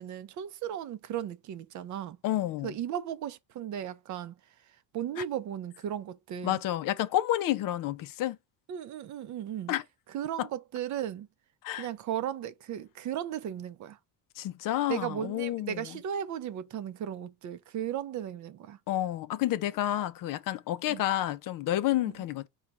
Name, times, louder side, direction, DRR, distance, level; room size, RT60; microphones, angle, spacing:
voice 1, 0.0-2.2 2.6-4.4 4.9-6.6 8.7-9.7 10.1-11.3 11.8-14.0 14.9-18.8 20.9-21.0 22.0-22.1, right 10 dB, 45° right, 0.5 m, -36 dB
voice 2, 2.2-2.8 5.2-5.3 6.4-8.4 9.7-9.8 10.4-10.5 11.6-11.9 14.4-16.0 18.9-22.5, left 13 dB, 50° left, 0.5 m, -30 dB
5.0 x 2.3 x 4.1 m
cardioid pair, 140°, 44 cm